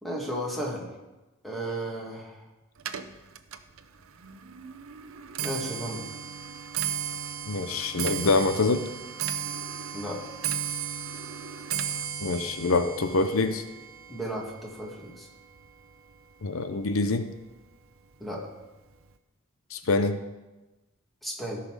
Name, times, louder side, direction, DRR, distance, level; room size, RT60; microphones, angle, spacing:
voice 1, 0.0-0.9 1.4-2.4 5.4-6.0 9.9-10.2 14.1-15.3 18.2-18.5 21.2-21.6, right 1 dB, ahead, -2 dB, 2.3 m, -34 dB
Clock, 2.8-16.1 16.5-16.9 17.7-17.8 18.1-18.5 18.8-18.9, right 8 dB, 75° right, 0.7 m, -35 dB
voice 2, 7.5-8.9 12.2-13.6 16.4-17.3 19.7-20.2, left 3 dB, 75° left, 9 dB, 0.7 m, -25 dB
17.0 x 5.9 x 4.9 m, 1.1 s
head